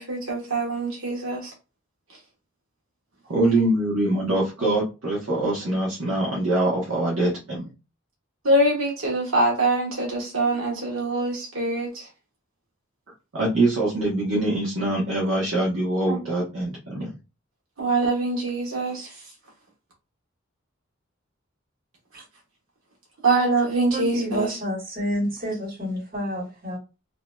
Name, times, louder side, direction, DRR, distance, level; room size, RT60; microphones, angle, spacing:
voice 1, 0.0-1.5 8.4-12.1 16.1-16.2 17.8-19.1 23.2-24.5, right 2 dB, 90° right, 1.2 m, -24 dB
voice 2, 3.3-7.7 13.3-17.1, right 2 dB, 70° right, 1.0 m, -24 dB
voice 3, 23.9-26.8, equal, 45° right, 1.6 m, -29 dB
3.0 x 2.8 x 2.2 m
head